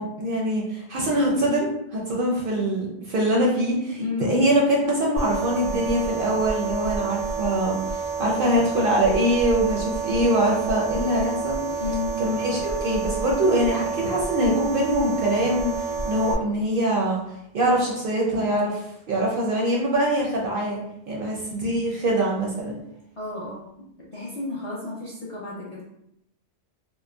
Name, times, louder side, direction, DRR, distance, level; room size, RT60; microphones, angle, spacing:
voice 1, 0.0-11.6 12.2-17.2 17.5-20.8 21.1-22.7, right 1 dB, 60° right, -3 dB, 0.6 m, -23 dB
voice 2, 4.0-4.3 11.8-12.1 23.2-23.6 24.1-25.8, left 4 dB, 50° left, -6 dB, 0.4 m, -31 dB
sound 1, 5.2-16.3, right 4 dB, 80° right, 0.9 m, -29 dB
3.0 x 2.1 x 2.2 m, 0.79 s
omnidirectional pair, 1.2 m